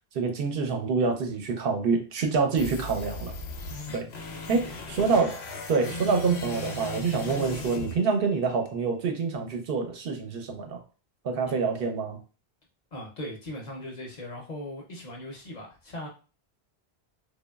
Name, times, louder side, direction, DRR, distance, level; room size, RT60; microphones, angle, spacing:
voice 1, 0.1-3.3 3.9-4.1 4.5-5.4 5.7-10.8 11.2-12.2, right 4 dB, 65° right, 3 dB, 0.7 m, -26 dB
sound 1, 2.6-8.6, left 2 dB, 85° left, 0.8 m, -37 dB
voice 2, 3.8-4.8 11.4-11.8 12.9-16.1, left 1 dB, 50° left, -1 dB, 0.7 m, -40 dB
2.9 x 2.2 x 2.2 m, 0.34 s
omnidirectional pair, 1.0 m